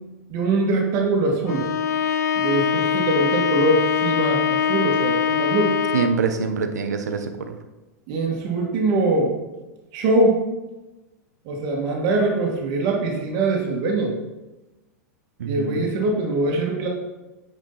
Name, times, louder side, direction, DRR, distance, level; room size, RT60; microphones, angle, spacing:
voice 1, 0.3-1.7 2.3-5.7 8.1-9.3 9.9-10.4 11.5-14.1 15.4-16.9, right 2 dB, 45° right, -1 dB, 2.1 m, -22 dB
Bowed string instrument, 1.5-6.3, left 8 dB, 80° left, 0.6 m, -23 dB
voice 2, 5.9-7.5 15.4-15.9, right 6 dB, 80° right, 7 dB, 1.0 m, -25 dB
9.3 x 5.2 x 4.2 m, 1.1 s
hypercardioid pair, 105°, 9 cm